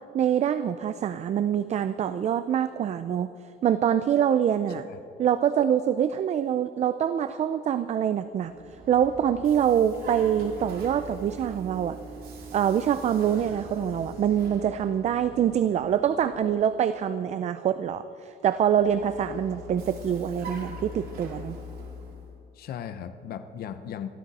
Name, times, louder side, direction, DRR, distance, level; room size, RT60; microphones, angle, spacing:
voice 1, 0.1-3.3 3.6-4.9 5.2-8.5 8.9-12.0 12.5-21.6, right 9 dB, 40° right, 12 dB, 0.4 m, -25 dB
voice 2, 4.7-5.0 22.5-24.1, left 9 dB, 60° left, 9 dB, 0.8 m, -37 dB
Vehicle, 8.3-16.8 18.5-22.4, right 1 dB, 55° right, 3.3 m, -43 dB
23.0 x 14.5 x 4.2 m, 2.7 s
cardioid pair, 140°, 18 cm